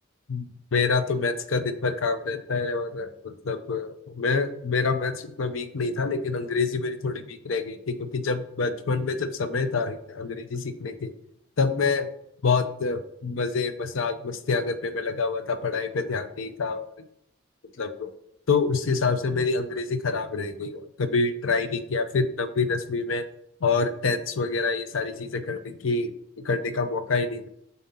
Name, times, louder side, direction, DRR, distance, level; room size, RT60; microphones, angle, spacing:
voice 1, 0.7-11.1 11.6-12.1 12.4-16.9 17.8-18.1 18.5-23.2 23.6-26.1 26.4-27.5, left 4 dB, 85° left, 10 dB, 0.6 m, -27 dB
7.3 x 2.8 x 5.5 m, 0.72 s
head